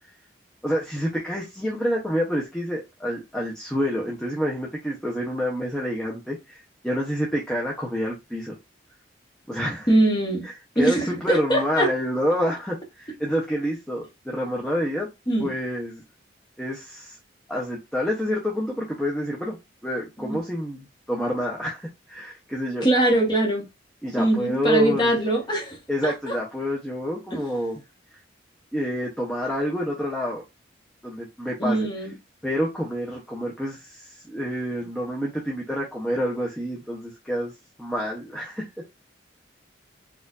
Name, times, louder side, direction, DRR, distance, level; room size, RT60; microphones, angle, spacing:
voice 1, 0.6-8.6 9.5-9.9 10.4-15.1 15.4-16.0 16.6-17.2 17.5-22.9 24.0-25.2 25.9-27.8 28.7-30.4 31.0-31.9 32.4-37.5 37.8-38.8, equal, 5° left, 0.7 m, -28 dB
voice 2, 9.9-10.5 10.7-11.9 15.3-15.5 20.2-20.4 22.8-23.7 24.2-25.8 26.0-26.1 27.3-27.4 31.6-32.1, right 1 dB, 20° left, 1.1 m, -22 dB
4.4 x 2.5 x 2.4 m
head